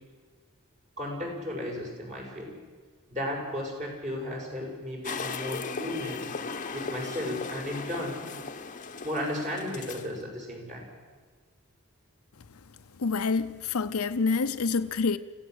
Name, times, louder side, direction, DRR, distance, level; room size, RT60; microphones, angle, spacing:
voice 1, 1.0-2.5 3.1-6.3 6.7-8.2 9.0-10.8, left 1 dB, 35° right, 6.6 m, -34 dB
sound 1, 5.0-10.1, left 4 dB, 35° left, 1.0 m, -37 dB
voice 2, 13.0-15.2, left 4 dB, 85° left, 0.7 m, -27 dB
25.0 x 16.0 x 8.0 m
head